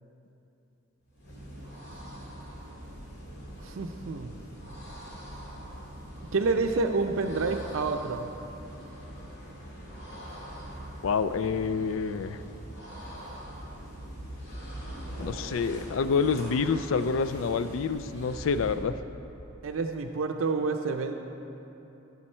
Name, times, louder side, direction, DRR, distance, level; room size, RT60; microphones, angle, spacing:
sound 1, 1.1-18.9, equal, 55° left, 2.7 m, -42 dB
voice 1, 3.6-4.3 6.3-8.3 19.6-21.1, right 3 dB, 85° right, 5 dB, 0.5 m, -28 dB
voice 2, 11.0-12.4 15.2-18.9, left 5 dB, 80° left, 12 dB, 0.4 m, -27 dB
14.5 x 7.1 x 4.3 m, 3.0 s
head